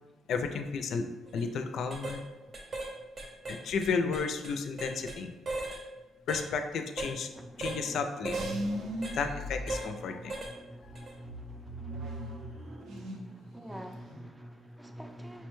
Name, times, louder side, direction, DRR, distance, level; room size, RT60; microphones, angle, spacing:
voice 1, 0.3-1.1 1.3-2.2 3.5-5.3 6.3-7.3 7.6-8.4 9.1-10.4, left 5 dB, 70° left, 0.4 m, -32 dB
sound 1, 1.3-1.4 1.9-2.2 2.5-2.9 3.2-5.2 5.4-5.8 6.3-6.5 7.0-7.1 7.6-7.8 8.2-8.5 9.0-9.2 9.7-9.9 10.3-10.5 10.9-11.1, right 2 dB, 50° right, 0.8 m, -37 dB
voice 2, 2.4-3.1 3.5-3.7 5.9-6.1 7.3-15.5, equal, 10° right, 0.4 m, -48 dB
sound 2, 8.3-10.3 10.8-13.4 13.7-14.3, equal, 80° right, 0.6 m, -39 dB
5.5 x 2.1 x 3.0 m
cardioid pair, 90°, 0 cm